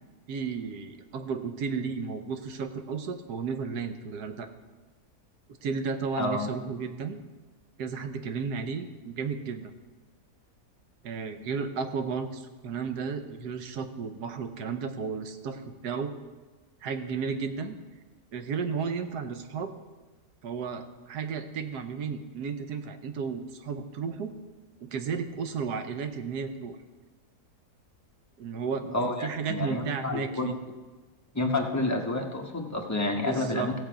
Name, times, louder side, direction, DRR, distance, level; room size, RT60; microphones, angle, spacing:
voice 1, 0.3-4.5 5.6-7.2 7.8-9.7 11.0-16.1 16.8-17.8 18.3-19.7 20.4-24.3 24.8-26.8 28.4-28.9 29.2-30.6 33.2-33.7, right 5 dB, 85° right, 8 dB, 1.4 m, -33 dB
voice 2, 6.2-6.5 28.9-30.5 31.3-33.7, left 2 dB, 10° left, 1 dB, 0.9 m, -29 dB
16.5 x 7.1 x 5.1 m, 1.3 s
omnidirectional pair, 1.7 m